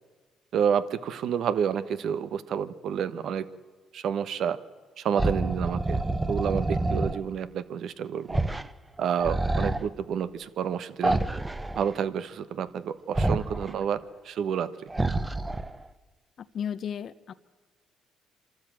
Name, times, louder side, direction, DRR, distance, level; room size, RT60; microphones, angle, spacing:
voice 1, 0.5-3.5 3.9-4.6 5.0-6.0 6.3-8.4 9.0-11.3 11.8-14.7, right 8 dB, 65° right, 14 dB, 1.1 m, -29 dB
sound 1, 5.2-7.2 8.3-8.7 9.0-9.8 11.0-11.9 13.1-13.7 14.9-15.8, right 2 dB, 15° right, 0.9 m, -27 dB
voice 2, 16.4-17.3, left 8 dB, 55° left, 13 dB, 0.7 m, -34 dB
25.5 x 13.0 x 9.0 m, 1.5 s
supercardioid pair, 75°, 0 cm